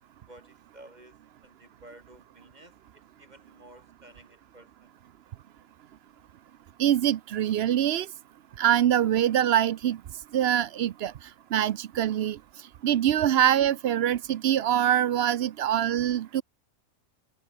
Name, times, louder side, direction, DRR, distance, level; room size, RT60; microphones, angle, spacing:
voice 1, 0.3-2.8 3.2-4.9, right 1 dB, 30° right, 5.2 m, -53 dB
voice 2, 6.8-8.1 8.6-10.0 10.3-11.1 11.5-12.4 12.8-16.4, right 11 dB, 60° right, 0.7 m, -24 dB
omnidirectional pair, 1.4 m